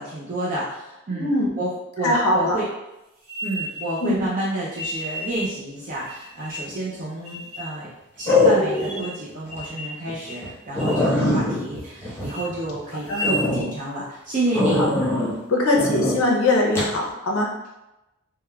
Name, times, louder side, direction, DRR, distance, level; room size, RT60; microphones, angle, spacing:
voice 1, 0.0-2.7 3.4-7.9 8.2-14.8, right 1 dB, 35° right, -6 dB, 0.4 m, -29 dB
voice 2, 2.0-2.6 4.0-4.3 11.2-11.4 13.1-13.2 14.8-14.9 15.5-17.5, left 1 dB, 70° left, 0 dB, 0.6 m, -21 dB
sound 1, 3.2-4.1 4.7-5.5 6.0-6.8 7.2-7.7 8.2-8.3 8.7-9.2 9.5-10.0 10.3-10.5 10.8-11.1 11.5-11.9 12.2-12.4 12.9-13.5, equal, 85° right, 1.0 m, -33 dB
sound 2, 6.7-7.1 8.3-9.0 9.5-9.6 10.1-10.2 10.4-10.5 10.7-12.8 13.2-13.6 14.5-15.3 15.7-16.2 16.7-16.9, left 2 dB, 10° left, 0.7 m, -22 dB
3.5 x 2.2 x 2.2 m, 0.95 s
head